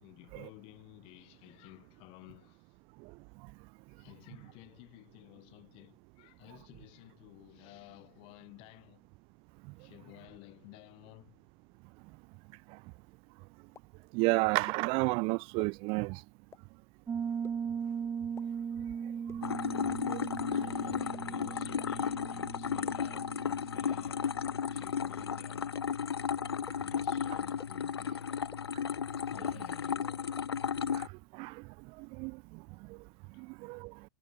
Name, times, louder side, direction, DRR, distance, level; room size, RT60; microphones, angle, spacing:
voice 1, 0.0-2.7 3.9-9.0 9.8-11.4 19.9-20.0 20.5-24.4 24.6-26.2 26.8-28.9 29.3-30.4 33.3-33.5, left 26 dB, 45° left, 6.4 m, -54 dB
sound 1, 13.8-13.9 14.7-14.8 15.6-15.7 16.5-16.6 17.4-17.5 18.4-18.5 19.3-19.4 20.2-20.3 21.1-21.2 22.1-22.2 23.0-23.1 23.9-24.0 24.8-24.9 25.7-25.8 26.7-26.8 27.6-27.7 28.5-28.6 29.4-29.5 30.4-30.5, left 6 dB, 20° left, 2.6 m, -49 dB
voice 2, 14.1-16.2 20.1-20.2 30.9-31.1 31.3-31.6 32.0-32.4 33.4-33.9, right 29 dB, 45° right, 0.7 m, -31 dB
Piano, 17.1-25.6, right 7 dB, 20° right, 1.8 m, -39 dB
sound 2, 19.4-31.1, left 7 dB, 90° left, 0.6 m, -34 dB
hypercardioid pair, 105°, 13 cm